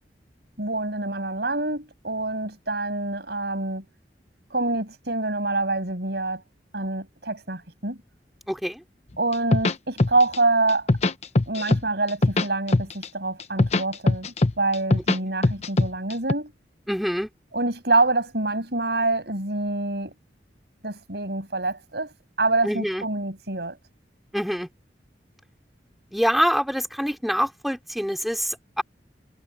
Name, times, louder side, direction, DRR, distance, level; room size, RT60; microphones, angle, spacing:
voice 1, 0.6-3.8 4.5-6.4 6.7-8.0 9.2-10.9 11.5-16.5 17.5-20.1 20.8-23.8, right 2 dB, 65° right, 7.8 m, -26 dB
voice 2, 8.5-8.8 15.2-15.3 16.9-17.3 22.6-23.0 24.3-24.7 26.1-28.8, equal, ahead, 3.6 m, -25 dB
sound 1, 9.3-10.4 10.7-11.8 12.1-13.1 13.4-15.2 15.4-16.3, left 2 dB, 40° left, 0.9 m, -21 dB
head